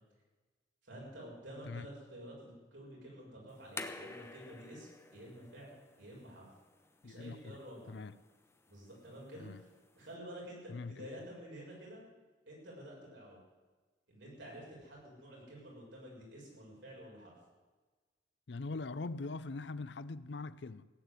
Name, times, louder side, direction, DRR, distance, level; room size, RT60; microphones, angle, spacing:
voice 1, 0.8-6.5 7.0-7.9 8.7-12.0 12.5-13.4 14.1-17.3, equal, 80° right, 6.8 m, -50 dB
sound 1, 3.5-10.1, left 3 dB, 15° left, 0.9 m, -51 dB
voice 2, 7.0-7.6 7.9-8.1 9.4-9.6 10.7-11.1 18.5-20.9, left 3 dB, 65° left, 0.6 m, -42 dB
16.5 x 9.4 x 8.2 m
head